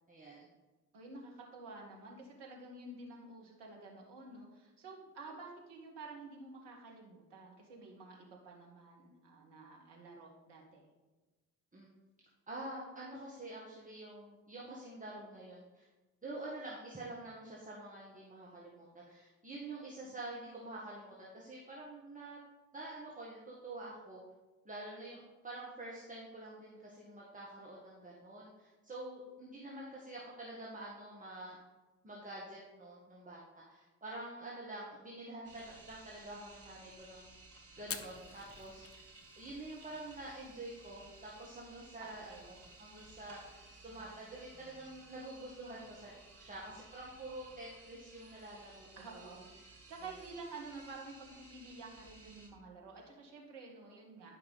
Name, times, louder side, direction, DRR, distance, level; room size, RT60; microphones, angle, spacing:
voice 1, 0.1-0.5 11.7-11.9 12.5-15.9 16.2-22.4 22.7-24.2 24.7-31.6 32.0-37.4 37.7-39.0 39.4-48.9 49.1-49.4, right 2 dB, 15° right, -5 dB, 1.8 m, -47 dB
voice 2, 0.9-10.9 20.0-20.2 42.0-42.5 49.0-54.4, right 3 dB, 60° right, -1 dB, 2.0 m, -50 dB
sound 1, 35.4-52.5, right 2 dB, 85° right, 1.2 m, -57 dB
Fire, 37.8-47.0, left 6 dB, 30° left, 0.8 m, -54 dB
11.0 x 5.4 x 4.1 m, 1.2 s
figure-of-eight pair, 45°, 46 cm